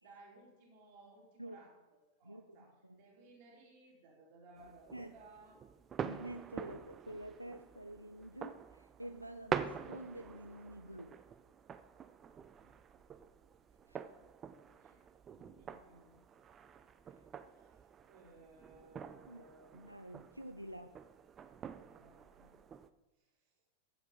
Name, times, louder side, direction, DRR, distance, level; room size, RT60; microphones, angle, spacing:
voice 1, 0.0-5.6 12.6-13.0 14.1-14.3 14.8-15.0 15.3-16.2 17.5-17.8 18.1-19.9 21.8-22.5 23.2-23.5, right 2 dB, 45° right, 2.9 m, -61 dB
voice 2, 2.2-3.0 4.9-5.1 6.0-11.2 13.9-14.0 17.0-17.2 19.3-19.4 19.7-21.0, right 1 dB, 90° right, 0.4 m, -48 dB
sound 1, 4.6-22.9, right 7 dB, 25° right, 0.4 m, -47 dB
7.2 x 7.2 x 5.5 m
figure-of-eight pair, 90°, 0 cm